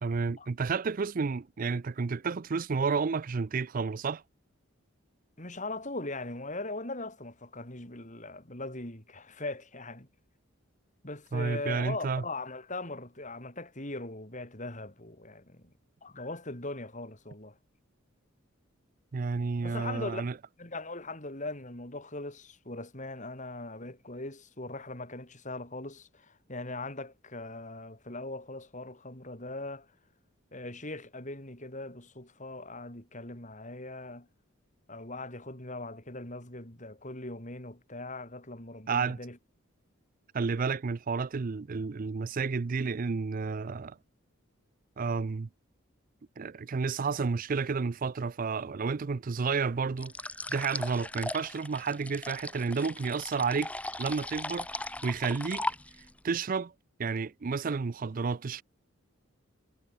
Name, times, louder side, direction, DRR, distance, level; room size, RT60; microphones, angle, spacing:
voice 1, 0.0-4.2 11.3-12.2 19.1-20.3 38.9-39.2 40.3-44.0 45.0-45.5 46.4-50.1 50.5-53.7 54.0-55.6 56.2-56.7 57.0-58.6, right 5 dB, 40° right, 0.5 m, -31 dB
voice 2, 5.4-10.1 11.0-15.7 16.0-17.5 19.6-20.3 20.6-29.9 30.5-34.3 34.9-39.4, left 2 dB, 35° left, 6.5 m, -40 dB
sound 1, 50.0-56.2, left 2 dB, 5° left, 0.7 m, -38 dB
head